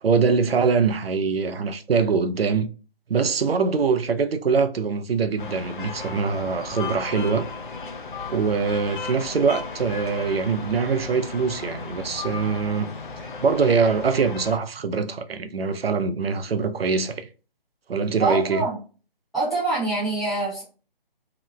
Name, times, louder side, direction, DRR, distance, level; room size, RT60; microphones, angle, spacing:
voice 1, 0.0-2.7 3.1-7.5 8.3-12.9 13.2-17.3 17.9-18.6, right 5 dB, 85° right, 0.5 m, -23 dB
sound 1, 5.4-14.6, left 4 dB, 60° left, 0.6 m, -35 dB
voice 2, 18.2-18.8 19.3-20.6, right 2 dB, ahead, 0.6 m, -25 dB
2.9 x 2.0 x 3.1 m
figure-of-eight pair, 150°, 29 cm